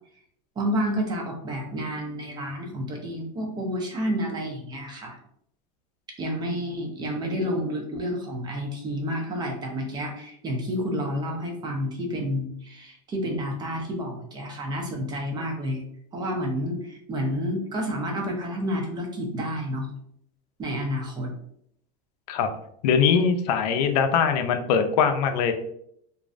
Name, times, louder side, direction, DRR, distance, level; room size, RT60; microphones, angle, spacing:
voice 1, 0.6-5.2 6.2-15.8 16.1-19.9 20.6-21.3, equal, 20° right, 1 dB, 0.5 m, -30 dB
voice 2, 22.8-25.5, left 6 dB, 85° left, 7 dB, 0.4 m, -22 dB
2.5 x 2.1 x 2.4 m, 0.72 s
supercardioid pair, 140°, 20 cm